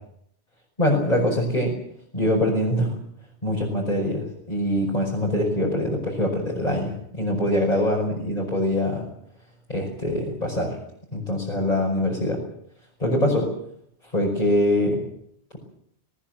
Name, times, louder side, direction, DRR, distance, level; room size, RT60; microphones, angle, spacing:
voice 1, 0.8-1.8 2.1-2.9 3.4-9.0 9.7-10.7 11.1-12.4 13.0-13.5 14.1-15.0, left 1 dB, 35° left, -3 dB, 5.8 m, -23 dB
20.0 x 19.0 x 9.2 m, 0.70 s
omnidirectional pair, 1.1 m